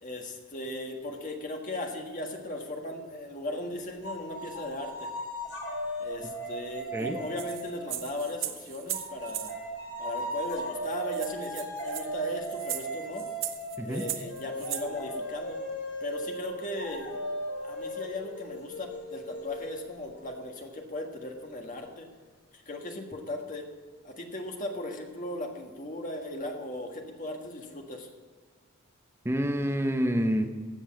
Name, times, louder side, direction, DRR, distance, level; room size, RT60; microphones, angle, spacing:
voice 1, 0.0-5.1 6.0-9.6 10.0-13.3 13.8-15.6 16.0-17.2 17.6-22.1 22.5-23.7 24.0-28.1, left 1 dB, 35° left, 2 dB, 1.6 m, -37 dB
sound 1, 4.0-8.4 8.9-20.3, right 1 dB, 65° left, 3.9 m, -37 dB
sound 2, 7.4-9.5 10.5-10.6 10.8-10.9 11.1-14.9, right 12 dB, 60° right, 0.8 m, -37 dB
voice 2, 29.2-30.5, equal, 10° right, 5 dB, 0.8 m, -27 dB
15.5 x 5.4 x 7.6 m, 1.5 s
head